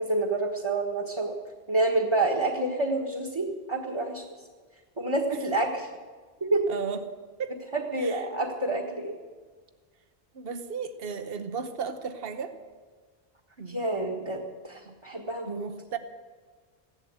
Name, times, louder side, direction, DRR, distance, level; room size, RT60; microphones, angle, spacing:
voice 1, 0.0-1.4 1.7-4.5 5.0-5.9 6.4-6.7 7.7-9.2 13.7-15.6, right 2 dB, 25° right, -1 dB, 1.5 m, -28 dB
voice 2, 6.7-7.0 7.4-7.6 8.0-8.2 10.3-12.6 13.6-14.3 14.9-15.0 15.5-16.0, right 6 dB, 65° right, 8 dB, 1.2 m, -35 dB
16.0 x 11.5 x 8.0 m, 1.5 s
omnidirectional pair, 1.1 m